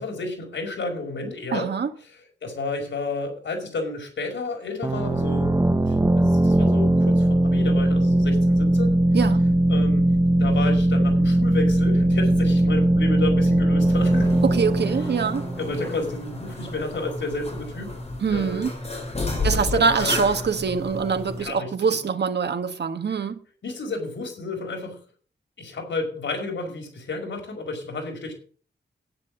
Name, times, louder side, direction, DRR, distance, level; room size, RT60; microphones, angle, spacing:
voice 1, 0.0-1.7 2.1-9.0 9.7-10.1 10.3-14.4 15.6-18.0 18.3-18.6 19.4-20.1 21.4-21.7 23.6-25.0 25.6-28.4, left 3 dB, 85° left, 5.6 m, -31 dB
voice 2, 1.5-1.9 9.1-9.4 14.4-15.4 18.2-18.7 19.4-23.4, right 5 dB, 65° right, 1.5 m, -24 dB
sound 1, 4.8-16.3, right 1 dB, 15° right, 1.1 m, -20 dB
sound 2, 13.8-21.5, left 2 dB, 35° left, 5.1 m, -32 dB
10.5 x 10.0 x 7.6 m
wide cardioid pair, 130°, 19 cm